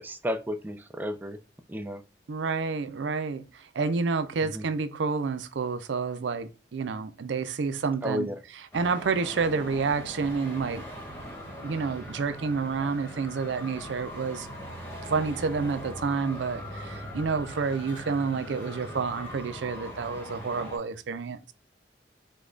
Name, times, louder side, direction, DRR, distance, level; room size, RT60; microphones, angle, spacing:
voice 1, 0.0-1.4 1.7-2.0 4.5-4.6 8.0-8.4, equal, 10° right, 0.3 m, -32 dB
voice 2, 2.3-8.3 8.7-10.8 11.6-14.5 15.0-21.4, right 5 dB, 85° right, 0.5 m, -29 dB
Traffic noise roadway noise, 8.7-20.8, equal, 15° left, 1.2 m, -41 dB
5.1 x 2.3 x 3.8 m
head